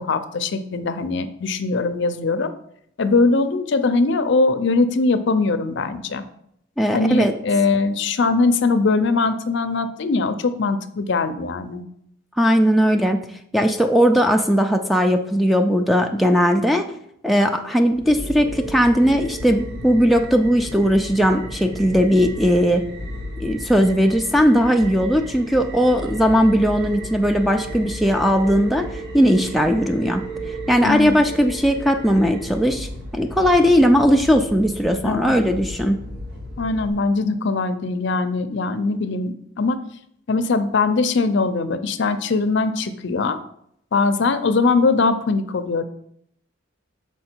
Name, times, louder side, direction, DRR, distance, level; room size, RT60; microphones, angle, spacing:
voice 1, 0.0-2.5 3.0-6.2 6.9-11.8 30.8-31.2 35.0-35.4 36.6-39.8 40.3-43.4 43.9-45.8, left 3 dB, 55° left, 10 dB, 0.5 m, -21 dB
voice 2, 6.8-7.3 12.4-13.2 13.5-16.9 17.2-22.9 23.4-28.9 29.1-30.2 30.7-36.0, equal, ahead, 5 dB, 0.3 m, -18 dB
sound 1, 17.9-36.9, right 1 dB, 50° right, 1.2 m, -34 dB
6.5 x 4.6 x 4.4 m, 0.72 s
head